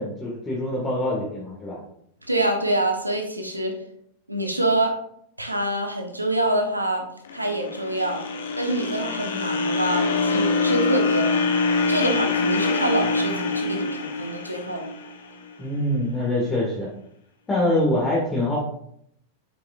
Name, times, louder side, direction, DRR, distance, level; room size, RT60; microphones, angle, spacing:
voice 1, 0.0-1.8 15.6-16.9 17.5-18.6, left 1 dB, 15° left, -5 dB, 1.8 m, -24 dB
voice 2, 2.3-3.8 4.3-4.9 5.4-7.0 7.3-8.2 8.6-14.8, right 1 dB, 85° right, 3 dB, 1.1 m, -26 dB
sound 1, 7.3-15.5, left 3 dB, 65° left, 0.9 m, -24 dB
7.5 x 5.6 x 2.5 m, 0.70 s
figure-of-eight pair, 90°, 0 cm